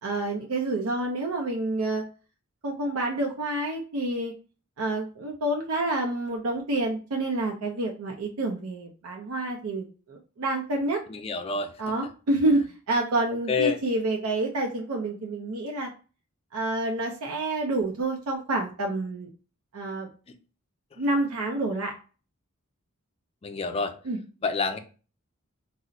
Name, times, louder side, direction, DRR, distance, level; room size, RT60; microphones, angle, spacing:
voice 1, 0.0-2.0 2.6-4.3 4.8-11.0 11.8-15.9 16.5-19.3 19.7-20.1 21.0-21.9 24.1-24.2, right 2 dB, 90° right, 1 dB, 0.5 m, -28 dB
voice 2, 11.1-11.7 13.5-13.8 23.4-24.0 24.4-24.8, left 4 dB, 30° left, 7 dB, 0.3 m, -27 dB
3.9 x 2.0 x 2.4 m, 0.35 s
head